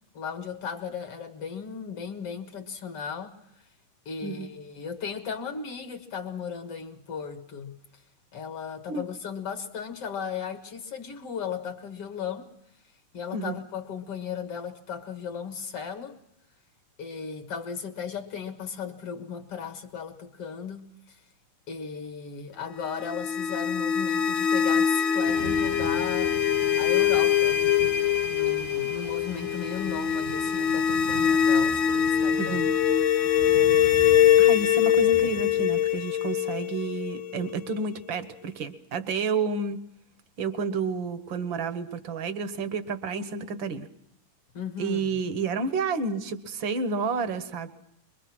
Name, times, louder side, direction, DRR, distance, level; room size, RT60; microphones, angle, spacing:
voice 1, 0.1-3.7 4.1-8.0 8.3-12.5 13.1-16.2 17.0-21.2 21.7-26.4 26.7-27.6 28.3-32.6 44.5-45.2, left 6 dB, 50° left, 2.2 m, -36 dB
sound 1, 22.8-37.8, left 9 dB, 80° left, 1.1 m, -23 dB
Thunder / Rain, 25.3-36.0, right 5 dB, 90° right, 3.1 m, -42 dB
voice 2, 32.4-32.7 33.4-33.6 34.4-39.8 40.4-43.9 44.8-47.7, right 4 dB, 55° right, 1.4 m, -30 dB
24.5 x 22.5 x 6.0 m
omnidirectional pair, 3.7 m